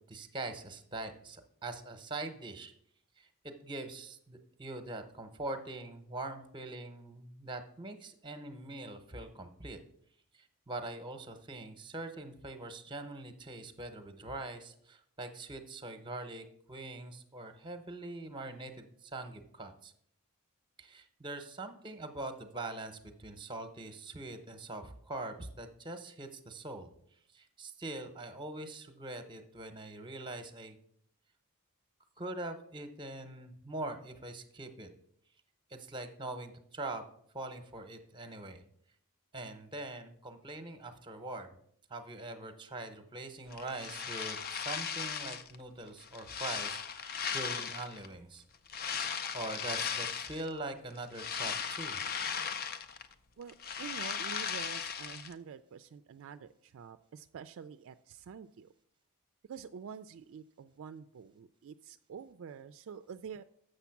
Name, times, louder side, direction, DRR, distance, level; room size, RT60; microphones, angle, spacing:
voice 1, 0.1-2.7 3.2-9.8 10.3-19.9 20.8-26.9 27.3-30.8 32.2-34.9 35.7-37.0 37.3-38.6 39.3-41.5 41.9-48.4 49.3-52.0, right 2 dB, 20° right, 8 dB, 0.8 m, -43 dB
sound 1, 43.5-45.6 46.0-48.1 48.7-50.5 50.9-53.1 53.4-55.3, left 7 dB, 45° left, 0.5 m, -37 dB
voice 2, 53.4-58.7 59.5-63.4, right 7 dB, 60° right, 11 dB, 0.3 m, -47 dB
7.0 x 6.6 x 5.8 m, 0.68 s
head